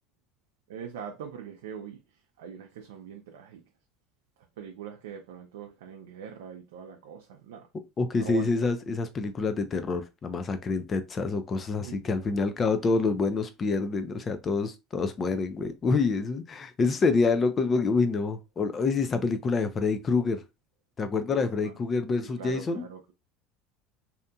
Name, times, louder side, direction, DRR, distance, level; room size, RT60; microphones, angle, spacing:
voice 1, 0.7-2.0 2.4-3.6 4.6-7.7 8.2-8.5 11.8-12.3 21.3-21.8 22.3-23.1, right 7 dB, 90° right, 0.4 m, -42 dB
voice 2, 8.0-20.4 21.0-22.9, left 4 dB, 30° left, 0.5 m, -27 dB
2.8 x 2.6 x 2.2 m
supercardioid pair, 105°, 0 cm